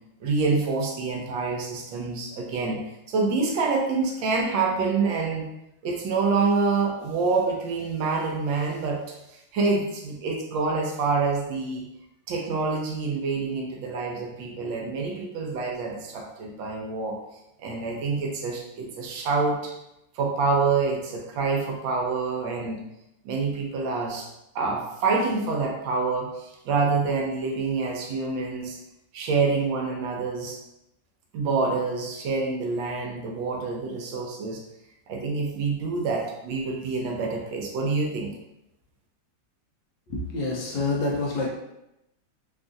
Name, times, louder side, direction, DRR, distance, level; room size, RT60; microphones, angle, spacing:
voice 1, 0.2-2.8 3.1-5.5 5.8-9.0 9.3-11.9 12.3-17.2 17.6-19.7 20.1-22.8 23.2-24.3 24.5-28.8 29.1-30.6 31.3-34.6 35.1-38.3, right 4 dB, 80° right, 0 dB, 1.3 m, -27 dB
voice 2, 40.1-41.5, left 3 dB, 70° left, -3 dB, 1.3 m, -27 dB
3.7 x 2.4 x 2.5 m, 0.88 s
omnidirectional pair, 2.1 m